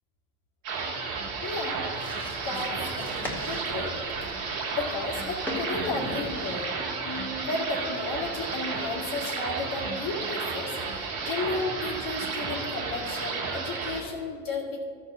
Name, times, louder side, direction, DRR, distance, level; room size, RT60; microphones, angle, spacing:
sound 1, 0.6-14.0, right 4 dB, 65° right, 2.8 m, -32 dB
voice 1, 1.4-1.8 2.4-4.0 4.7-6.7 7.0-14.9, left 3 dB, 50° left, -2 dB, 2.2 m, -33 dB
sound 2, 1.4-6.6, left 1 dB, 5° left, 2.2 m, -39 dB
12.5 x 5.5 x 6.2 m, 2.2 s
supercardioid pair, 105°, 43 cm